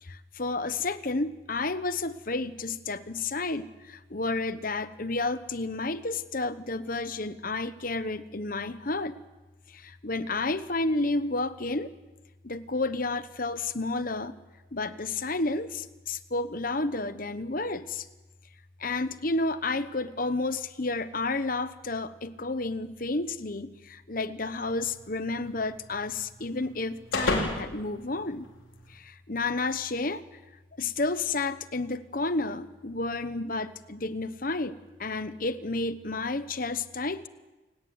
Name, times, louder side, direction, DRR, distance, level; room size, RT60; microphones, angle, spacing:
voice 1, 0.0-9.2 9.7-11.9 12.4-14.4 14.7-18.1 18.8-28.5 28.9-30.2 30.7-37.3, left 3 dB, 45° left, 12 dB, 1.1 m, -31 dB
sound 1, 24.5-28.9, left 2 dB, 90° left, 5.6 m, -35 dB
29.5 x 14.5 x 9.7 m, 1.1 s
head